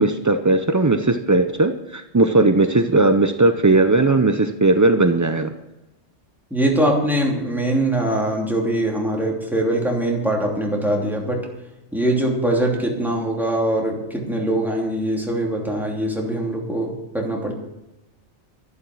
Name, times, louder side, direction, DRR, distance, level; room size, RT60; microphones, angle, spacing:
voice 1, 0.0-5.5, right 2 dB, 30° right, 7 dB, 0.3 m, -17 dB
voice 2, 6.5-11.5 11.9-17.5, right 1 dB, ahead, -2 dB, 2.9 m, -22 dB
12.5 x 11.0 x 6.3 m, 0.98 s
omnidirectional pair, 1.3 m